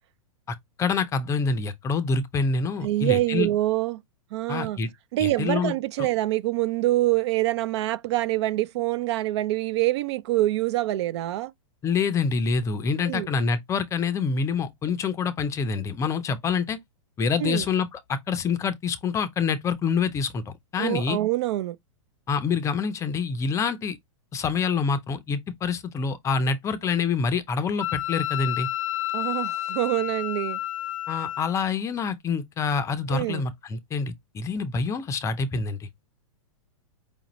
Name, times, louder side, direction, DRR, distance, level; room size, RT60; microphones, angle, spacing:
voice 1, 0.8-3.5 4.5-4.9 5.2-6.1 11.8-16.8 17.2-21.2 22.3-24.0 24.3-28.7 31.1-35.9, left 5 dB, 15° left, 0.5 m, -26 dB
voice 2, 2.8-4.0 4.3-4.8 5.1-11.5 13.0-13.3 17.4-17.7 20.8-21.8 29.1-30.6 33.1-33.4, right 16 dB, 55° right, 0.4 m, -25 dB
Wind instrument woodwind instrument, 27.8-31.5, left 14 dB, 70° left, 0.4 m, -30 dB
5.0 x 2.5 x 3.0 m
hypercardioid pair, 135°, 17 cm